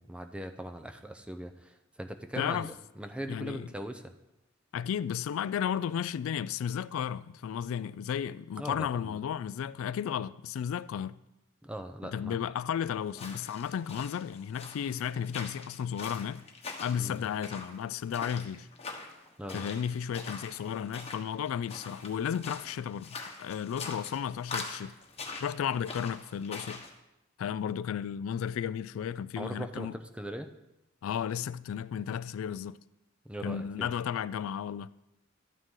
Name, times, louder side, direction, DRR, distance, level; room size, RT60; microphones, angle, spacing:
voice 1, 0.0-4.1 8.6-9.2 11.6-12.4 16.9-17.3 19.4-19.7 29.4-30.5 33.2-33.9, right 1 dB, 5° right, 0.6 m, -40 dB
voice 2, 2.4-2.7 3.3-3.7 4.7-11.2 12.0-16.4 16.8-18.7 19.5-24.9 25.4-26.8 27.4-30.0 31.0-32.8 33.4-34.9, left 8 dB, 80° left, 0.3 m, -33 dB
sound 1, 13.1-26.9, left 4 dB, 30° left, 1.2 m, -44 dB
12.0 x 8.9 x 3.8 m
head